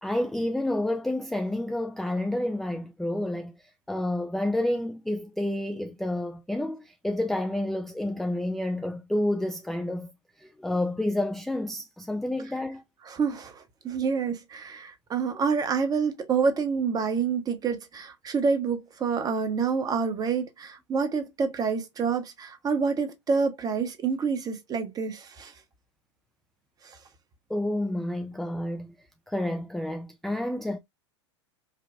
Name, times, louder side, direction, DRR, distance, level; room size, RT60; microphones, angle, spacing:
voice 1, 0.0-10.1 10.4-12.8 27.5-28.9 29.3-30.8, left 1 dB, ahead, 0.4 m, -29 dB
voice 2, 13.1-25.5 26.8-27.0, right 5 dB, 25° right, 0.9 m, -27 dB
5.1 x 2.2 x 2.4 m
figure-of-eight pair, 90°, 15 cm